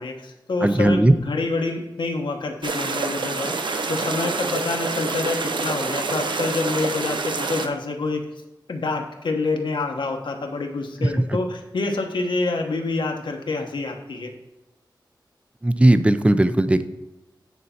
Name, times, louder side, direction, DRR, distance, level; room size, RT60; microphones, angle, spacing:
voice 1, 0.0-8.2 8.7-14.3, left 3 dB, 90° left, 2 dB, 1.1 m, -27 dB
voice 2, 0.6-1.1 15.6-16.8, right 1 dB, 15° right, 11 dB, 0.5 m, -17 dB
sound 1, 2.6-7.7, right 4 dB, 80° right, 0.7 m, -27 dB
9.6 x 4.1 x 5.6 m, 1.0 s
wide cardioid pair, 90°, 8 cm